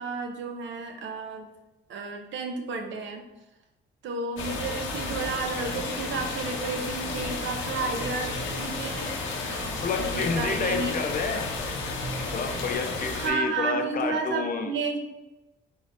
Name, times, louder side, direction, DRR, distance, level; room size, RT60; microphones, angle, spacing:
voice 1, 0.0-1.5 1.9-3.2 4.0-9.1 9.4-10.9 13.1-15.0, right 4 dB, 70° right, 4 dB, 0.7 m, -32 dB
sound 1, 4.4-13.3, left 3 dB, 85° left, 0.8 m, -32 dB
voice 2, 9.8-11.5 12.3-14.7, left 4 dB, 45° left, 5 dB, 0.5 m, -29 dB
4.1 x 3.9 x 2.5 m, 1.0 s
cardioid pair, 90°, 20 cm